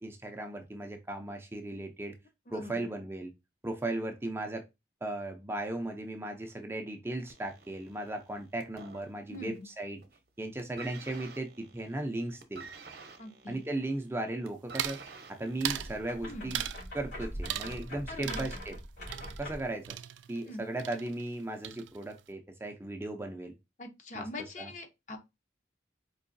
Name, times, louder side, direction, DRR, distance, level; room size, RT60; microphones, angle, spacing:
voice 1, 0.0-2.2 2.5-3.3 3.6-4.6 5.0-10.0 10.4-12.7 13.5-15.0 15.3-16.6 16.9-18.8 19.4-20.0 20.3-23.5 24.1-24.2 24.6-24.7, right 2 dB, 15° right, 0.5 m, -36 dB
voice 2, 2.5-2.9 9.3-9.7 13.2-13.6 16.3-16.5 18.1-18.5 20.5-20.6 23.8-25.2, left 1 dB, 40° left, 0.7 m, -42 dB
sound 1, 7.3-9.6 9.9-10.3 10.6-16.5 17.4-17.5, right 4 dB, 55° right, 0.8 m, -50 dB
sound 2, 14.7-15.1 15.6-15.9 16.5-16.9 17.4-18.0 18.2-20.5 20.8-21.4 21.6-22.2, right 11 dB, 80° right, 0.3 m, -38 dB
sound 3, 15.7-19.8, equal, 80° left, 2.8 m, -42 dB
4.6 x 3.0 x 2.5 m
head